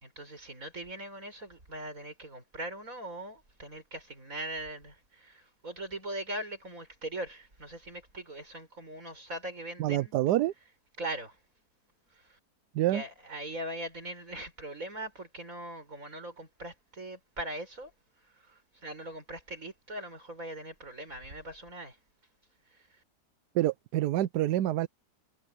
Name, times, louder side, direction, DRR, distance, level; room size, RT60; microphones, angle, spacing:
voice 1, 0.0-10.1 11.0-11.4 12.2-12.4 12.9-17.9 18.5-22.0, right 1 dB, 55° right, 7.1 m, -41 dB
voice 2, 9.8-10.5 12.7-13.0 23.5-24.9, right 14 dB, 80° right, 1.2 m, -27 dB
omnidirectional pair, 1.7 m